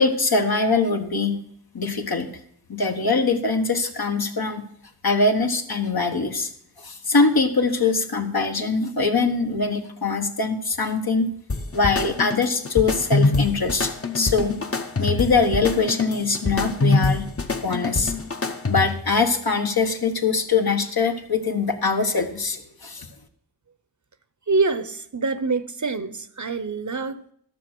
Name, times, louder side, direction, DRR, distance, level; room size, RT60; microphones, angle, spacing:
voice 1, 0.0-1.4 1.7-2.3 2.7-4.6 5.0-6.5 6.8-11.3 11.7-14.6 15.0-17.3 17.6-18.1 18.7-23.1, left 4 dB, 65° left, 1.4 m, -22 dB
sound 1, 11.5-19.1, left 3 dB, 35° left, 0.9 m, -25 dB
voice 2, 24.5-27.3, right 3 dB, 45° right, 0.8 m, -25 dB
13.0 x 6.5 x 6.1 m
wide cardioid pair, 45°, 40 cm